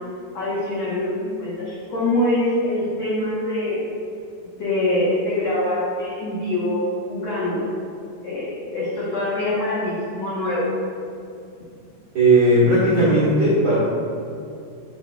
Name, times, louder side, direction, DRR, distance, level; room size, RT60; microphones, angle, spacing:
voice 1, 0.3-3.8 4.4-7.7 8.2-10.7, left 1 dB, 75° left, -9 dB, 1.5 m, -24 dB
voice 2, 12.1-13.8, right 1 dB, 65° right, -12 dB, 1.5 m, -16 dB
8.2 x 7.1 x 2.3 m, 2.5 s
omnidirectional pair, 4.7 m